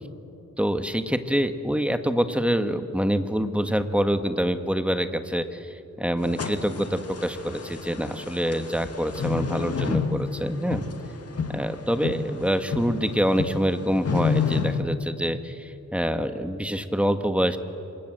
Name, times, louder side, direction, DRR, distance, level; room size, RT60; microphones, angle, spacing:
voice 1, 0.6-10.8 11.5-17.6, equal, 5° right, 8 dB, 1.6 m, -26 dB
sound 1, 6.2-14.8, left 5 dB, 50° left, 2.2 m, -30 dB
27.5 x 26.5 x 7.9 m, 2.7 s
wide cardioid pair, 110°, 31 cm